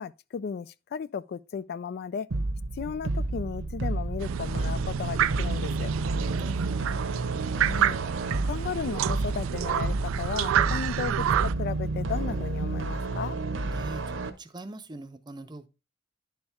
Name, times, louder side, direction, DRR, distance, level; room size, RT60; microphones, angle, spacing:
voice 1, 0.0-2.3 2.8-5.9 7.6-8.0 8.4-13.4, left 6 dB, 50° left, 0.3 m, -35 dB
sound 1, 2.3-14.3, right 2 dB, 70° right, 0.9 m, -31 dB
sound 2, 4.2-11.5, right 10 dB, 90° right, 0.3 m, -29 dB
voice 2, 6.1-7.0 13.6-15.7, right 2 dB, 20° right, 0.6 m, -42 dB
10.5 x 4.4 x 3.4 m
head